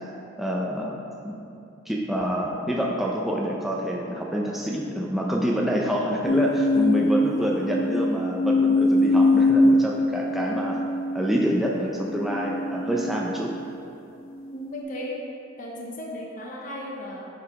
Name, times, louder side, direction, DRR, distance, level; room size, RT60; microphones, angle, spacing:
voice 1, 0.4-0.9 1.2-1.5 1.9-10.8 11.1-13.5, equal, ahead, -3 dB, 0.5 m, -27 dB
sound 1, 6.2-13.7 14.3-14.8, left 2 dB, 80° left, 1.1 m, -23 dB
voice 2, 14.5-15.2 15.6-17.3, left 1 dB, 40° left, -2 dB, 0.8 m, -35 dB
8.6 x 4.7 x 3.6 m, 2.6 s
head